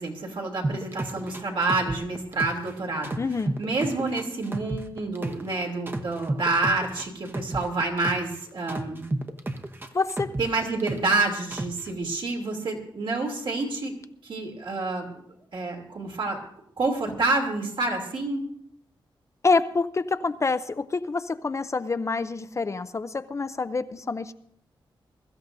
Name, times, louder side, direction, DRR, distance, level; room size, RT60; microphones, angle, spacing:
voice 1, 0.0-3.2 3.6-9.0 10.4-13.9 14.2-15.1 15.5-16.4 16.8-18.4, right 3 dB, 65° right, 1 dB, 2.8 m, -28 dB
sound 1, 0.6-2.7 3.0-5.5 5.9-8.3 8.7-11.2 11.5-11.9, right 2 dB, 25° right, 0.9 m, -31 dB
voice 2, 3.2-3.6 9.9-10.3 19.4-24.3, left 4 dB, 35° left, 12 dB, 0.5 m, -27 dB
22.0 x 13.0 x 2.7 m, 0.69 s
wide cardioid pair, 105°, 9 cm